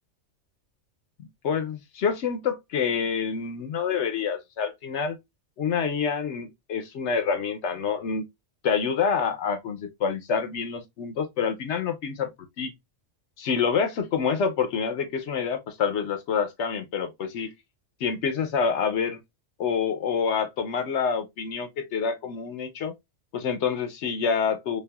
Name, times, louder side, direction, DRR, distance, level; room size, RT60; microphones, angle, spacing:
voice 1, 1.2-5.2 5.6-8.2 8.6-12.7 13.4-17.5 18.0-19.2 19.6-22.9 23.3-24.8, left 6 dB, 70° left, 0.9 m, -27 dB
5.2 x 2.4 x 2.3 m
omnidirectional pair, 1.3 m